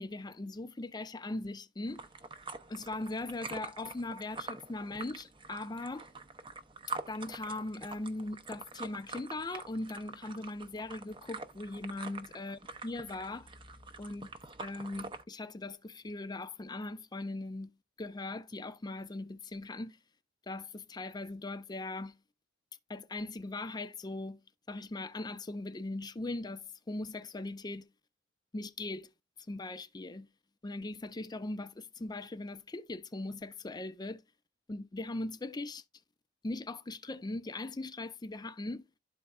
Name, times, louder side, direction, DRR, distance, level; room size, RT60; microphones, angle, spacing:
voice 1, 0.0-2.0 2.7-6.1 7.1-13.5 14.0-20.0 20.5-22.2 22.9-27.9 28.5-29.1 29.5-30.3 30.6-34.2 34.7-35.8 36.4-38.9, left 2 dB, 20° left, 0.5 m, -40 dB
sound 1, 1.9-15.2, right 3 dB, 25° right, 0.6 m, -45 dB
12.0 x 4.2 x 2.3 m
head